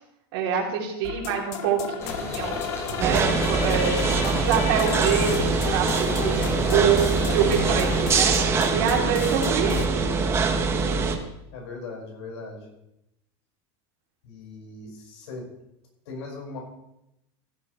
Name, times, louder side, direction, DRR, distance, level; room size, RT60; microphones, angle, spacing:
voice 1, 0.3-8.4 8.7-10.1, right 7 dB, 65° right, -1 dB, 3.1 m, -26 dB
sound 1, 1.0-9.9, left 7 dB, 45° left, 1.1 m, -34 dB
sound 2, 2.0-8.1, left 1 dB, 20° left, 2.5 m, -33 dB
sound 3, 3.0-11.2, right 4 dB, 20° right, 0.9 m, -24 dB
voice 2, 6.3-6.9 9.7-9.8 11.5-12.6 14.2-15.4 16.0-16.6, left 3 dB, 80° left, 0 dB, 5.1 m, -38 dB
15.5 x 10.5 x 3.2 m, 0.86 s
supercardioid pair, 165°, 14 cm